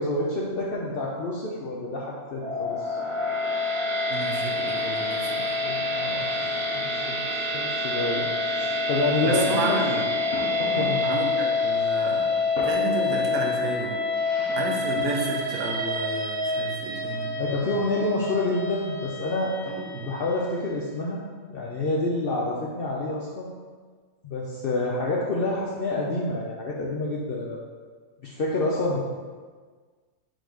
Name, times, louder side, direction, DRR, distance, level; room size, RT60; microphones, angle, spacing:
voice 1, 0.0-3.0 5.6-7.2 7.5-9.8 10.8-11.2 17.0-19.5 20.0-21.2 21.5-23.5 24.2-27.6 28.2-29.0, left 2 dB, 70° left, -3 dB, 0.5 m, -28 dB
sound 1, 2.4-20.6, left 3 dB, 50° right, 0.9 m, -27 dB
voice 2, 4.1-5.6 9.2-10.1 11.0-14.0 14.5-17.5 19.7-20.1, right 3 dB, 80° right, 0 dB, 1.2 m, -31 dB
sound 2, 10.3-11.1 11.6-13.4 14.1-15.2, left 1 dB, 55° left, 0.9 m, -36 dB
3.8 x 2.7 x 4.8 m, 1.5 s
omnidirectional pair, 1.5 m